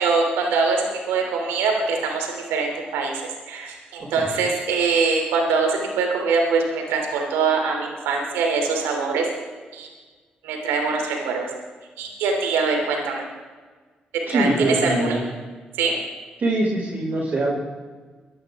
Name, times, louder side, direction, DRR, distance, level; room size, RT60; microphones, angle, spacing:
voice 1, 0.0-3.1 3.5-9.3 9.7-9.9 10.4-11.5 12.0-13.3 14.3-15.2 15.8-15.9, right 4 dB, 80° right, 1 dB, 3.0 m, -23 dB
voice 2, 14.3-15.2 16.4-17.5, right 1 dB, 50° right, -8 dB, 5.4 m, -23 dB
24.0 x 11.0 x 3.6 m, 1.4 s
hypercardioid pair, 40°, 4 cm